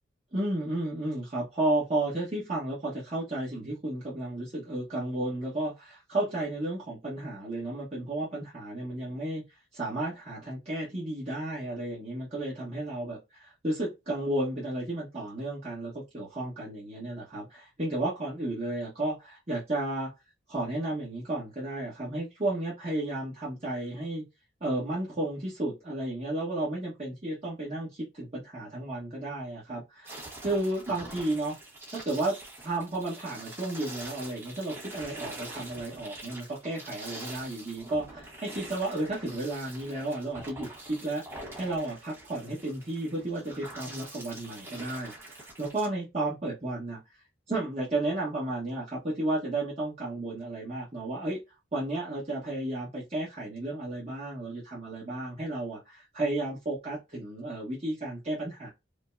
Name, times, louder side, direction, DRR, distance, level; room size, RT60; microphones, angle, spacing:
voice 1, 0.3-9.4 9.7-20.1 20.5-24.3 24.6-31.5 31.9-32.4 32.6-41.2 41.5-47.0 47.5-51.4 51.7-58.7, right 2 dB, 30° right, 1.2 m, -33 dB
sound 1, 30.0-45.9, right 1 dB, 10° right, 1.0 m, -45 dB
5.0 x 2.2 x 2.5 m
head